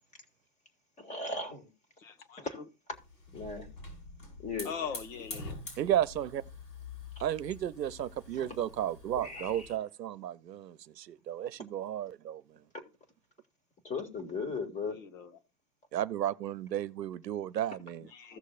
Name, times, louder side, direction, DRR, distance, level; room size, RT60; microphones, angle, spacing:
voice 1, 1.0-1.6 2.4-2.6 3.3-3.7 4.4-4.9 8.4-8.5 9.2-9.7 13.8-15.0, left 4 dB, 15° left, 1.8 m, -37 dB
voice 2, 2.0-2.6 4.6-5.6 14.9-15.3 18.1-18.4, left 7 dB, 50° left, 1.6 m, -41 dB
Hiss / Fire, 2.9-9.8, left 3 dB, 75° left, 6.1 m, -46 dB
voice 3, 5.8-6.4 7.2-12.6 15.9-18.1, right 11 dB, 80° right, 0.8 m, -33 dB
16.0 x 6.5 x 2.3 m
hypercardioid pair, 120°, 49 cm